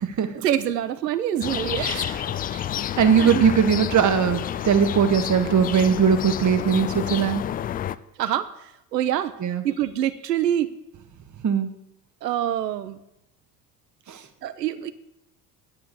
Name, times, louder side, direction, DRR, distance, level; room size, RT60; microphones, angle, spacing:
voice 1, 0.3-1.9 2.5-2.7 3.2-3.4 8.2-8.5 8.9-9.3 9.6-10.7 12.2-13.0 14.4-14.9, right 11 dB, 80° right, 14 dB, 0.8 m, -25 dB
sound 1, 1.4-7.9, left 11 dB, 20° left, 0.3 m, -29 dB
voice 2, 1.8-2.1 3.0-7.4 9.4-9.6 11.4-11.7 14.1-14.2, right 7 dB, 35° right, 9 dB, 1.6 m, -20 dB
9.6 x 7.8 x 7.7 m, 0.85 s
figure-of-eight pair, 60°, 49 cm